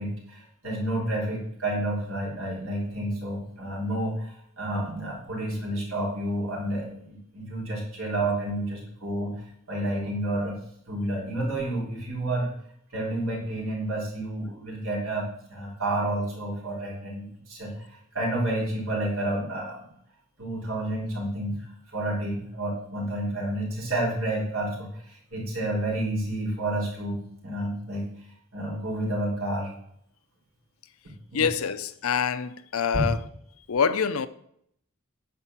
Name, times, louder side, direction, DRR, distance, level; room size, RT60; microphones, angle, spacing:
voice 1, 0.0-10.6 10.9-12.5 12.9-19.8 20.4-28.1 28.5-29.7 31.3-31.4 32.9-33.0, right 1 dB, 75° right, 3.7 m, -30 dB
voice 2, 31.3-33.2 33.7-34.3, left 6 dB, 80° left, 0.6 m, -25 dB
9.9 x 4.4 x 7.4 m
head